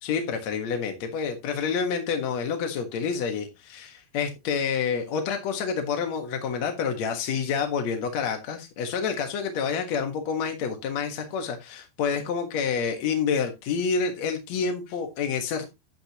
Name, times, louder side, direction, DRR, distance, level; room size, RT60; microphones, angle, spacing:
voice 1, 0.0-15.7, left 6 dB, 60° left, 2.0 m, -28 dB
12.0 x 8.9 x 2.9 m
omnidirectional pair, 4.8 m